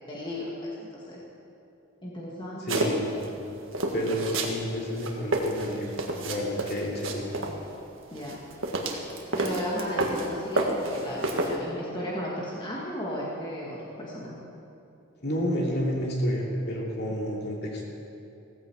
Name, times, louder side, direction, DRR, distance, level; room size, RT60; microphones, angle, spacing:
voice 1, 0.1-1.2 2.0-2.8 8.1-8.4 9.3-14.4, equal, 25° left, -5 dB, 1.9 m, -35 dB
voice 2, 2.6-3.2 3.9-7.3 15.2-17.9, equal, 50° left, -2 dB, 2.8 m, -30 dB
sound 1, 2.7-3.3 3.7-4.6 4.9-7.6 8.2-10.3 10.6-11.6, right 2 dB, 70° right, 1.7 m, -29 dB
16.5 x 15.0 x 4.7 m, 2.8 s
head